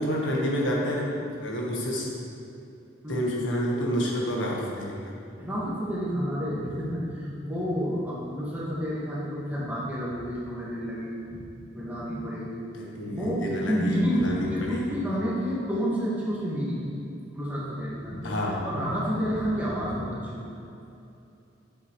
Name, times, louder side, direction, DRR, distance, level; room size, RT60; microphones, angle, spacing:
voice 1, 0.0-2.1 3.1-5.0 12.7-15.0 18.2-18.6, equal, 80° left, -2 dB, 1.4 m, -29 dB
voice 2, 5.4-11.4 11.7-12.6 13.1-16.9 17.3-18.3 18.6-20.5, equal, 10° right, -8 dB, 1.8 m, -30 dB
8.0 x 7.3 x 3.2 m, 2.7 s
head